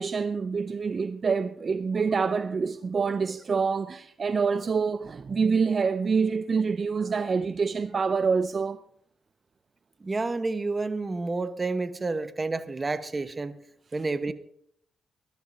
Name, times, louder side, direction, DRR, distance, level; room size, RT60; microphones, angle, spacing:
voice 1, 0.0-8.8, right 5 dB, 50° right, 0.5 m, -26 dB
voice 2, 10.0-13.5 13.9-14.3, right 3 dB, 30° right, 1.1 m, -29 dB
20.5 x 11.5 x 2.7 m
cardioid pair, 75°, 0 cm